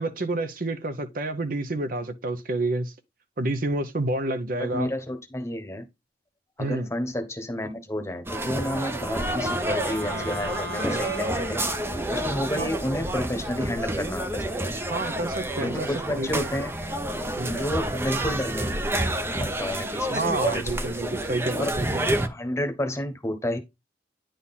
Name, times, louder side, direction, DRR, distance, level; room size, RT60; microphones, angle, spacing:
voice 1, 0.0-2.9 3.4-4.9 6.6-6.9 12.6-12.7 14.9-16.5 17.4-17.6 20.1-22.2, right 2 dB, 50° right, 0.8 m, -29 dB
voice 2, 4.6-5.8 6.6-11.6 12.1-14.5 15.6-16.7 17.5-18.7 19.0-20.9 21.5-21.7 22.2-23.6, left 1 dB, 15° left, 1.1 m, -31 dB
sound 1, 8.3-22.3, right 1 dB, 15° right, 0.6 m, -29 dB
Wind instrument woodwind instrument, 8.4-12.7, right 1 dB, 85° right, 1.9 m, -39 dB
9.8 x 3.9 x 4.1 m
head